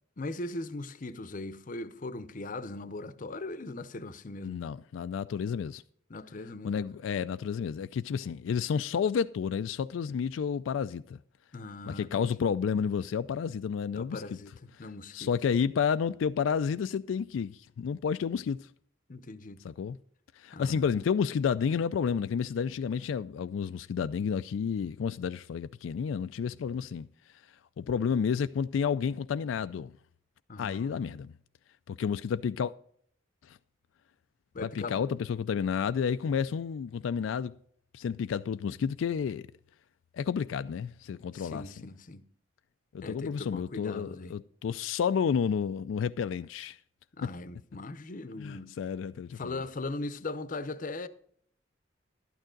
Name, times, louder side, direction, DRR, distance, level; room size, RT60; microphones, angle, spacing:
voice 1, 0.2-4.6 6.1-6.8 11.5-12.3 13.9-15.3 19.1-19.6 20.5-20.9 30.5-31.1 34.5-35.0 41.3-42.2 43.0-44.4 47.2-48.7 49.3-51.1, left 2 dB, 45° left, 0.7 m, -39 dB
voice 2, 4.4-5.8 6.6-11.2 11.9-14.2 15.1-18.7 19.6-20.0 20.4-27.1 27.8-29.9 30.6-31.3 31.9-32.7 33.4-33.6 34.6-37.5 37.9-39.5 40.1-41.6 42.9-46.8 47.2-47.3 48.4-49.6, left 7 dB, 85° left, 0.3 m, -31 dB
12.0 x 9.0 x 3.8 m
head